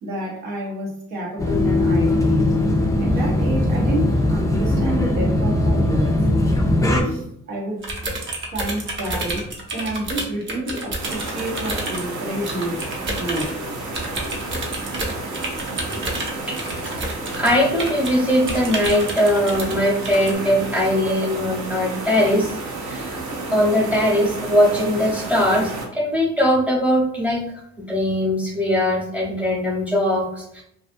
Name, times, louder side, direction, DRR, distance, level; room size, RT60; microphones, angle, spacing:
voice 1, 0.0-2.5 3.0-6.2 6.9-7.9 8.5-9.5 9.7-12.8 13.2-13.6, right 1 dB, 90° right, -3 dB, 1.1 m, -28 dB
sound 1, 1.4-7.0, left 1 dB, 10° left, 0.4 m, -19 dB
sound 2, 7.8-12.1 12.5-13.5 13.9-18.2 18.5-19.8 20.0-20.3, right 2 dB, 40° right, 0.8 m, -29 dB
sound 3, 11.0-25.9, right 2 dB, 75° right, 0.8 m, -31 dB
voice 2, 16.8-22.6 22.8-23.2 23.5-27.4 27.8-30.6, left 1 dB, 5° right, -2 dB, 0.9 m, -20 dB
2.5 x 2.4 x 2.5 m, 0.72 s
cardioid pair, 90°, 30 cm